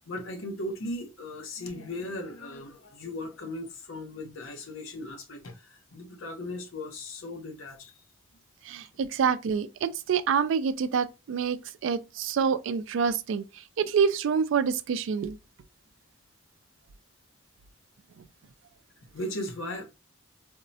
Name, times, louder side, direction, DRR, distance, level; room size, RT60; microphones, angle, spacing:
voice 1, 0.1-7.9 19.1-19.8, left 1 dB, 85° left, 0.7 m, -37 dB
voice 2, 8.7-11.6 11.8-13.4 13.8-15.4, right 6 dB, 75° right, 0.3 m, -27 dB
3.5 x 2.0 x 2.6 m
head